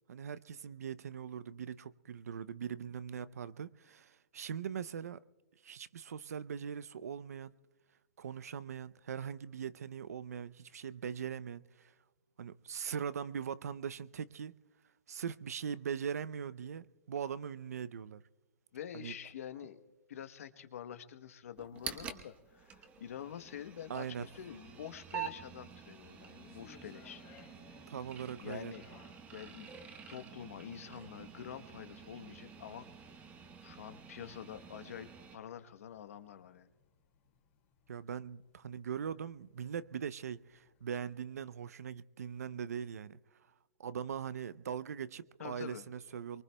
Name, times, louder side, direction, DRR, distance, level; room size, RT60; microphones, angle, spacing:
voice 1, 0.1-5.2 5.6-7.5 8.2-11.9 12.4-14.5 15.1-18.2 18.9-19.1 23.9-24.3 27.9-28.7 37.9-43.2 43.8-46.4, right 7 dB, 80° right, 0.6 m, -41 dB
voice 2, 18.7-19.8 20.1-27.2 28.4-28.8 29.3-29.7 30.1-32.9 33.6-36.7 45.4-45.8, left 9 dB, 65° left, 1.0 m, -47 dB
sound 1, 21.6-35.4, right 8 dB, 15° right, 1.0 m, -48 dB
sound 2, 24.2-41.0, left 6 dB, 30° left, 2.4 m, -66 dB
23.5 x 22.5 x 2.2 m
hypercardioid pair, 155°, 8 cm